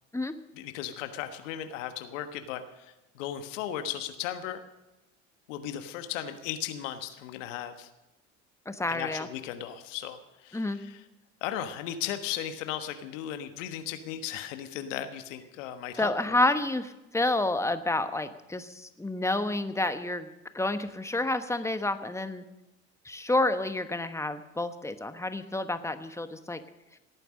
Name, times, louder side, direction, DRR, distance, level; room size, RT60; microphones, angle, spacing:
voice 1, 0.6-4.6 5.5-7.9 8.9-11.0 11.4-16.4, left 10 dB, 70° left, 9 dB, 1.4 m, -36 dB
voice 2, 8.7-9.3 10.5-10.8 16.0-20.3 20.5-22.4 23.0-26.6, left 2 dB, 5° left, 10 dB, 1.2 m, -29 dB
18.0 x 9.1 x 6.4 m, 0.98 s
hypercardioid pair, 70°, 38 cm